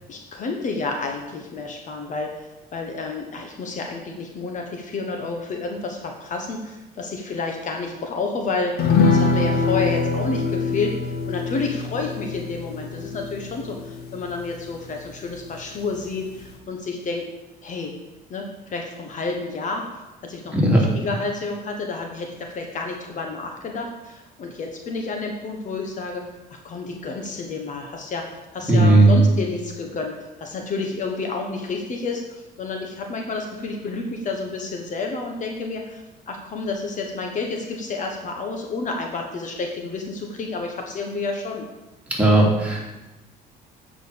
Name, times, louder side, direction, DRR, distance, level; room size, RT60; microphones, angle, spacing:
voice 1, 0.1-8.8 9.1-17.2 17.6-17.9 18.3-19.8 20.2-26.2 26.5-28.3 28.5-32.2 32.6-41.7, left 3 dB, 50° left, 2 dB, 1.3 m, -30 dB
sound 1, 8.8-15.6 15.9-16.0 16.3-16.5, left 4 dB, 70° left, 1.4 m, -24 dB
voice 2, 20.5-20.9 28.7-29.3 42.2-42.8, right 2 dB, 10° right, -4 dB, 3.1 m, -15 dB
8.3 x 5.1 x 7.0 m, 1.0 s
cardioid pair, 110°, 17 cm